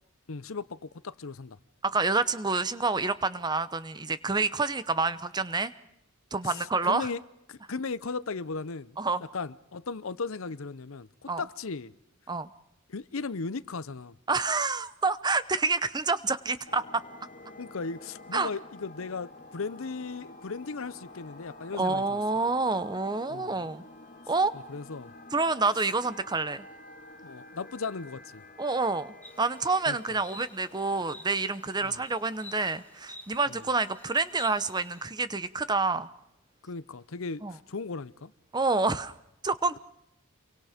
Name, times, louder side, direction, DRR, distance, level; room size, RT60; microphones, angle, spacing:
voice 1, 0.3-1.6 6.4-7.2 7.5-9.0 9.3-11.9 12.9-14.1 17.6-22.2 23.3-23.7 24.5-25.1 27.2-28.4 29.9-30.0 31.8-32.0 33.5-33.6 36.6-38.3, left 4 dB, 70° left, 0.8 m, -37 dB
voice 2, 1.8-5.7 6.3-7.1 9.0-9.2 11.3-11.4 12.3-12.5 14.3-17.0 18.3-18.5 21.7-23.8 24.3-24.5 25.3-26.6 28.6-36.1 37.4-37.6 38.5-39.1 39.4-39.8, right 3 dB, 20° right, 0.8 m, -28 dB
sound 1, 16.6-32.9, left 2 dB, 35° left, 2.0 m, -50 dB
Insect, 29.2-35.1, left 2 dB, 10° left, 1.7 m, -50 dB
29.0 x 23.5 x 5.1 m
head